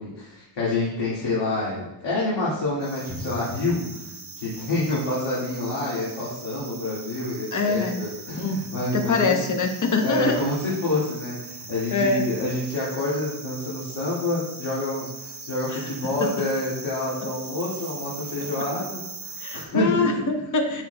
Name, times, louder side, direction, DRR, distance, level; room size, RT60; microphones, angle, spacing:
voice 1, 0.0-9.4 9.9-20.2 20.7-20.8, left 2 dB, 65° left, -8 dB, 1.9 m, -28 dB
sound 1, 2.8-19.7, right 4 dB, 30° right, 0.9 m, -40 dB
Drum, 3.1-5.5, equal, 10° left, 0.7 m, -41 dB
voice 2, 7.5-8.0 8.3-8.6 8.9-10.4 11.9-12.3 15.7-15.8 16.2-16.3 18.4-18.5 19.4-20.8, left 3 dB, 40° left, 4 dB, 0.9 m, -24 dB
10.0 x 4.9 x 2.2 m, 0.98 s
cardioid pair, 115°, 46 cm